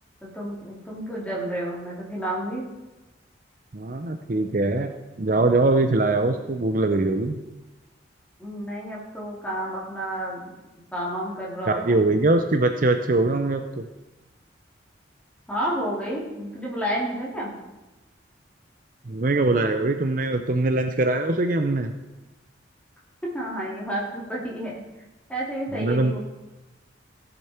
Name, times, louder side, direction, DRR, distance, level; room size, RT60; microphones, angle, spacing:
voice 1, 0.2-2.6 8.4-10.5 10.9-12.0 15.5-17.5 23.3-24.8 25.3-26.2, right 1 dB, 5° left, -5 dB, 3.0 m, -30 dB
voice 2, 3.7-4.9 5.2-7.4 11.7-13.9 19.1-21.9 25.7-26.1, right 2 dB, 45° right, 6 dB, 0.6 m, -22 dB
17.0 x 6.8 x 4.4 m, 1.1 s
head